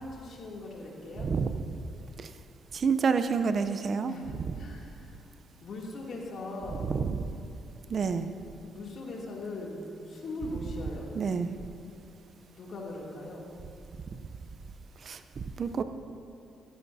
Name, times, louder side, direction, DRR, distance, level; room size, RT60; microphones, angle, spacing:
voice 1, 0.0-1.3 4.1-5.2 5.6-6.9 8.7-11.2 12.6-13.5, left 2 dB, 60° left, -3 dB, 2.6 m, -40 dB
voice 2, 2.7-4.1 4.5-4.6 6.9-7.2 7.9-8.3 11.2-11.5 15.0-15.2 15.6-15.8, right 5 dB, 50° right, 10 dB, 0.6 m, -28 dB
14.5 x 14.5 x 2.7 m, 2.6 s
cardioid pair, 90°, 0 cm